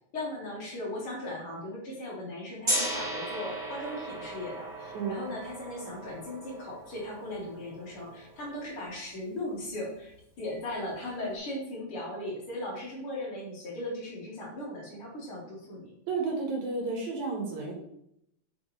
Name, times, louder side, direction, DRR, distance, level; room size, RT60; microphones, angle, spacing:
voice 1, 0.1-15.9, left 1 dB, 50° left, -3 dB, 2.6 m, -38 dB
Gong, 2.6-8.6, right 1 dB, 25° right, 2.6 m, -36 dB
voice 2, 16.1-17.7, right 4 dB, 80° right, -1 dB, 3.0 m, -32 dB
7.6 x 5.2 x 3.3 m, 0.76 s
omnidirectional pair, 3.3 m